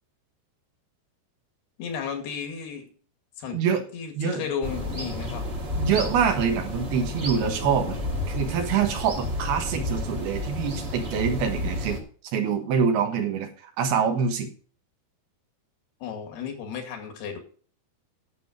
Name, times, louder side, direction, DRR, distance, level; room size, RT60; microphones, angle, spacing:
voice 1, 1.8-2.9 3.4-3.6 3.9-5.5 16.0-17.4, left 7 dB, 80° left, 4 dB, 4.1 m, -33 dB
voice 2, 3.5-3.9 4.2-4.5 5.7-8.0 8.3-12.0 12.3-14.5, right 7 dB, 75° right, 5 dB, 3.3 m, -25 dB
sound 1, 4.6-12.0, left 1 dB, 55° right, 0.7 m, -31 dB
10.5 x 7.6 x 5.1 m, 0.43 s
omnidirectional pair, 4.5 m